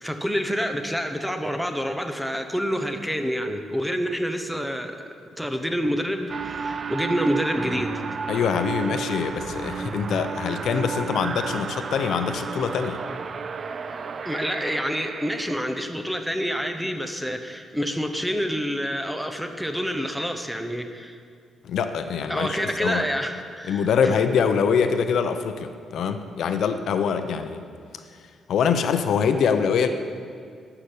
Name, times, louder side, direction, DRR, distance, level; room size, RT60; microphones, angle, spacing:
voice 1, 0.0-8.0 14.2-21.2 22.3-24.1, equal, ahead, 6 dB, 0.7 m, -28 dB
sound 1, 6.3-15.6, right 5 dB, 40° right, 0.4 m, -32 dB
voice 2, 8.3-13.0 21.6-23.0 23.7-27.6 28.5-29.9, left 6 dB, 65° left, 8 dB, 0.7 m, -24 dB
11.5 x 5.9 x 8.4 m, 2.3 s
cardioid pair, 140°, 0 cm